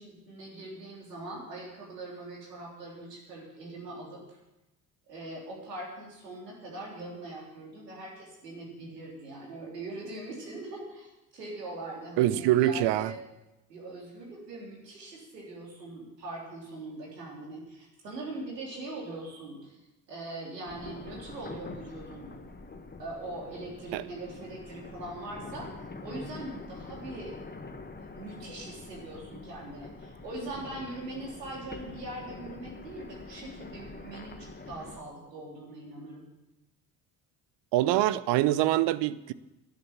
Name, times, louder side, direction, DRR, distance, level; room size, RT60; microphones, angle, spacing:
voice 1, 0.0-4.4 5.1-13.2 13.7-19.8 20.1-22.3 23.0-25.7 26.0-27.4 28.0-36.3, right 2 dB, 90° right, -2 dB, 3.7 m, -41 dB
voice 2, 12.2-13.1 23.9-24.0 37.7-39.3, right 14 dB, 60° right, 16 dB, 0.8 m, -24 dB
sound 1, 20.7-35.0, left 3 dB, 20° left, 1.6 m, -45 dB
13.0 x 11.0 x 7.3 m, 0.97 s
hypercardioid pair, 55°, 48 cm